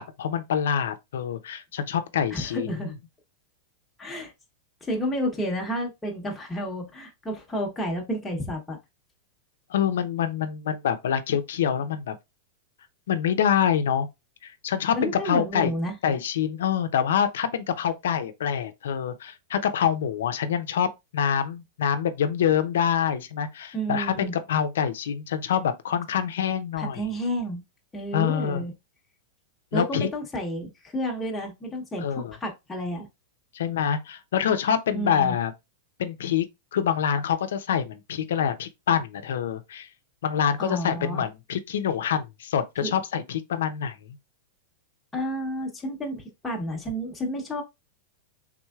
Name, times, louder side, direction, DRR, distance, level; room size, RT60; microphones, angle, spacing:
voice 1, 0.0-3.0 9.7-12.2 13.1-14.1 14.4-15.7 16.0-27.0 28.1-28.6 29.7-30.1 32.0-32.3 33.5-35.5 36.0-36.5 36.7-39.9 40.2-44.0, left 8 dB, 85° left, 0.6 m, -26 dB
voice 2, 2.3-2.9 4.0-4.3 4.8-8.8 14.9-15.9 23.7-24.3 26.8-27.6 27.9-28.7 29.7-33.1 34.9-35.4 40.6-41.2 42.8-42.9 45.1-47.6, equal, 10° left, 1.0 m, -31 dB
3.6 x 3.2 x 2.3 m
supercardioid pair, 145°, 0 cm